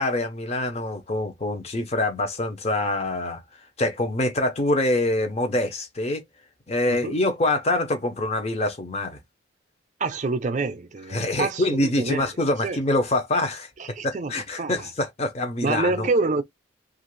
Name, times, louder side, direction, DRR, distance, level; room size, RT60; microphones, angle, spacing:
voice 1, 0.0-3.4 3.8-6.2 6.7-9.2 11.1-13.7 14.0-16.1, left 2 dB, 30° left, 0.6 m, -25 dB
voice 2, 6.9-7.2 10.0-12.3 12.6-12.8 13.8-14.9 15.6-16.4, right 3 dB, 40° right, 0.5 m, -27 dB
2.8 x 2.5 x 3.0 m
head